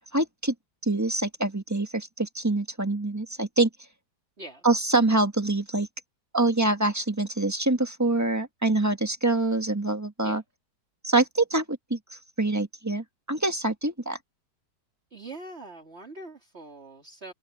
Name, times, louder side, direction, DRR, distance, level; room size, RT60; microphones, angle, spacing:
voice 1, 0.1-0.5 0.8-3.7 4.6-5.9 6.3-10.4 11.0-12.0 12.4-14.2, right 2 dB, 10° right, 1.5 m, -25 dB
voice 2, 15.1-17.3, right 2 dB, 35° right, 3.8 m, -43 dB
omnidirectional pair, 1.8 m